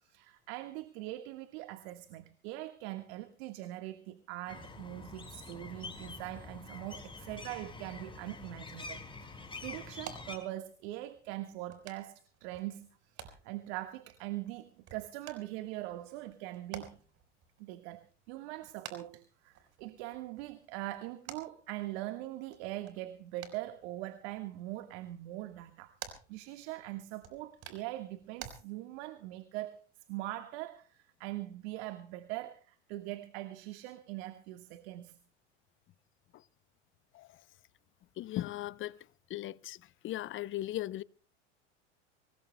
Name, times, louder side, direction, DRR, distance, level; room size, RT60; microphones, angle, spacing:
voice 1, 0.0-17.0 17.6-29.8 30.1-35.2, right 16 dB, 60° right, 1.5 m, -42 dB
sound 1, 4.5-10.4, left 3 dB, 15° left, 4.6 m, -46 dB
sound 2, 8.7-28.5, right 9 dB, 45° right, 4.4 m, -53 dB
voice 2, 38.2-39.0 39.3-39.8 40.0-41.0, left 15 dB, 35° left, 0.6 m, -38 dB
25.5 x 20.0 x 2.2 m
hypercardioid pair, 90°, 36 cm